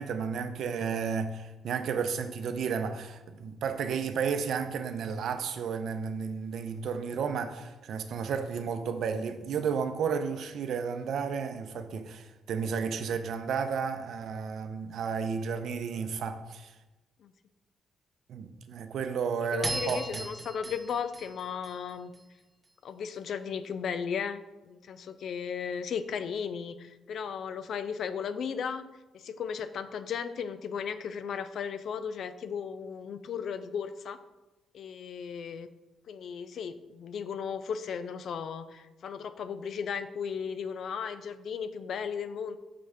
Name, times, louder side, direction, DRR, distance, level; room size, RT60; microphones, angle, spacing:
voice 1, 0.0-16.7 18.3-20.2, right 6 dB, 75° right, 0.6 m, -32 dB
voice 2, 19.5-22.1 22.8-28.8 29.1-34.2 34.7-35.7 36.1-42.6, left 7 dB, 70° left, 0.4 m, -35 dB
sound 1, 19.6-22.2, right 2 dB, 25° right, 1.4 m, -37 dB
5.9 x 3.1 x 5.0 m
cardioid pair, 70°, 0 cm